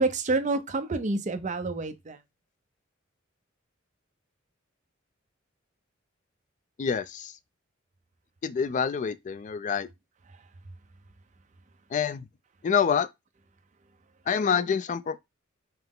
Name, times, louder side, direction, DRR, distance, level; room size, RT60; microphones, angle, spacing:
voice 1, 0.0-2.2, right 3 dB, 40° right, 0.6 m, -28 dB
voice 2, 6.8-7.4 8.4-9.9 11.9-12.3 12.6-13.1 14.3-15.2, left 6 dB, 40° left, 0.3 m, -27 dB
5.6 x 2.0 x 3.7 m
head